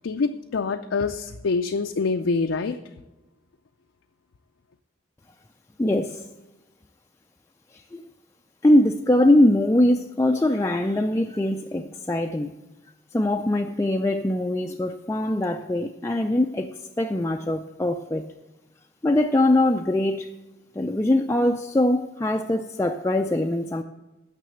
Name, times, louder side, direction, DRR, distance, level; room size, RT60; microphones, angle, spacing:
voice 1, 0.0-2.8, left 4 dB, 75° left, 6 dB, 0.5 m, -25 dB
voice 2, 5.8-6.3 7.9-8.0 8.6-12.5 13.1-16.7 17.0-18.2 19.0-20.3 20.8-23.8, left 1 dB, 15° left, 3 dB, 0.3 m, -22 dB
9.3 x 6.7 x 7.7 m, 1.1 s
head